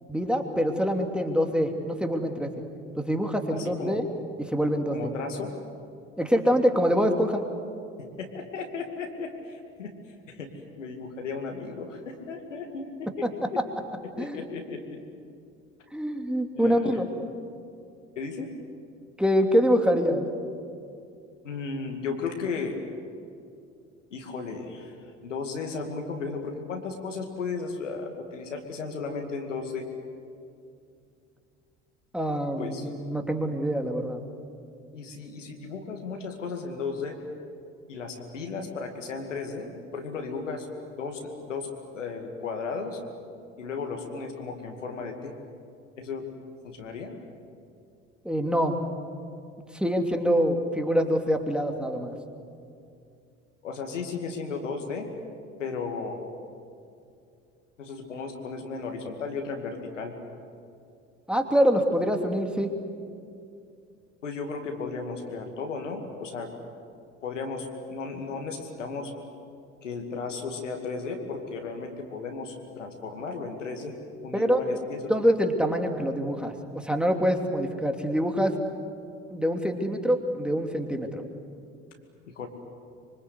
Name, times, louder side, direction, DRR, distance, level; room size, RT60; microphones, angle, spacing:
voice 1, 0.1-2.5 2.9-4.1 4.4-5.0 6.2-7.4 13.2-13.3 14.2-14.4 15.9-17.1 19.2-20.2 32.1-34.2 48.2-48.8 49.7-52.1 61.3-62.7 74.3-74.6 75.1-78.5 79.3-81.2, equal, 5° right, 4 dB, 2.8 m, -25 dB
voice 2, 3.5-4.0 4.9-5.5 8.2-9.9 10.3-10.5 10.8-13.3 14.1-15.0 16.6-17.0 18.2-18.5 21.4-22.8 24.1-29.9 32.6-32.9 34.9-37.2 37.9-43.0 43.6-45.3 46.0-46.3 46.6-47.1 53.6-55.1 55.6-56.2 57.8-60.1 64.2-66.5 67.2-69.1 69.8-73.9 74.2-75.1 82.3-82.5, left 4 dB, 85° left, 3 dB, 2.5 m, -35 dB
25.5 x 24.5 x 8.3 m, 2.4 s
figure-of-eight pair, 60°, 36 cm